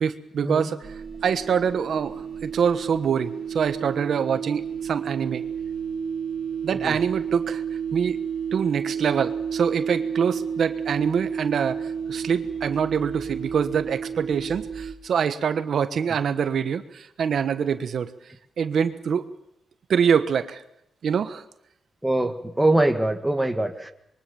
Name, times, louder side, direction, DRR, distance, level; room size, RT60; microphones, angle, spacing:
voice 1, 0.0-5.4 6.6-7.6 7.9-8.2 8.5-18.1 18.6-19.3 19.9-20.6 21.0-21.4, right 7 dB, 65° right, 11 dB, 1.3 m, -25 dB
sound 1, 0.8-14.9, right 7 dB, 40° right, 4.0 m, -31 dB
voice 2, 22.0-23.9, right 1 dB, 5° right, 7 dB, 1.8 m, -23 dB
26.0 x 23.0 x 7.2 m, 0.77 s
cardioid pair, 125°, 0 cm